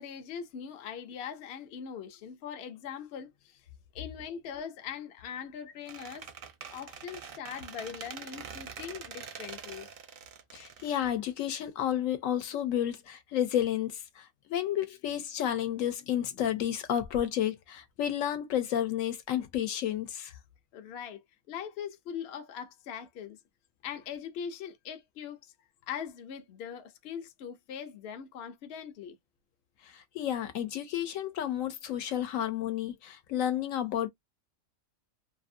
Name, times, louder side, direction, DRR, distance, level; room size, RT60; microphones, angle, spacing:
voice 1, 0.0-3.6 3.9-6.3 6.7-9.9 20.7-23.4 23.8-25.5 25.9-29.2, left 8 dB, 60° left, 0.7 m, -41 dB
Squeak, 5.9-11.7, right 6 dB, 60° right, 0.6 m, -45 dB
voice 2, 10.5-20.3 29.9-34.1, left 10 dB, 80° left, 1.0 m, -31 dB
2.7 x 2.5 x 2.5 m
omnidirectional pair, 1.4 m